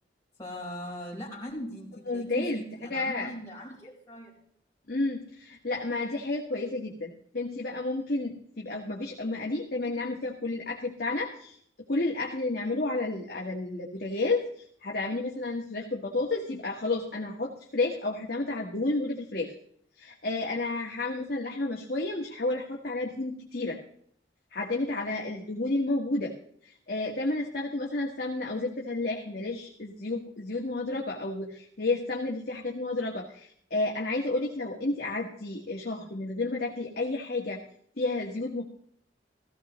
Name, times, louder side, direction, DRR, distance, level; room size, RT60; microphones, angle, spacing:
voice 1, 0.4-4.4, equal, 20° left, -6 dB, 4.2 m, -39 dB
voice 2, 2.1-2.6 2.9-3.3 4.9-11.6 11.9-14.5 14.8-19.5 20.0-23.8 24.5-26.3 26.6-37.6 38.0-38.6, left 2 dB, 55° left, -1 dB, 1.5 m, -31 dB
16.0 x 15.5 x 3.1 m, 0.63 s
head